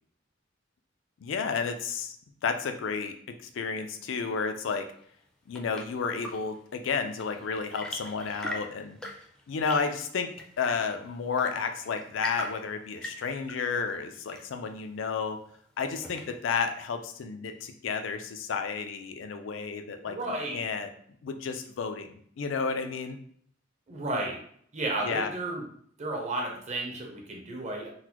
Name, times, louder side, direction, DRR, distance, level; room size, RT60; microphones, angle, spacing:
voice 1, 1.2-2.2 2.4-3.1 3.4-4.9 5.5-9.0 9.5-10.3 10.6-15.4 15.8-20.2 20.5-20.9 21.2-23.2 25.0-25.3, left 5 dB, 75° left, 7 dB, 0.4 m, -31 dB
Chirp tweet / Engine / Tap, 5.1-16.6, left 1 dB, 5° left, 0.4 m, -43 dB
voice 2, 20.1-20.6 23.9-24.4 24.7-25.6 26.0-27.9, right 2 dB, 35° right, 0 dB, 0.7 m, -33 dB
3.9 x 2.1 x 2.9 m, 0.63 s
head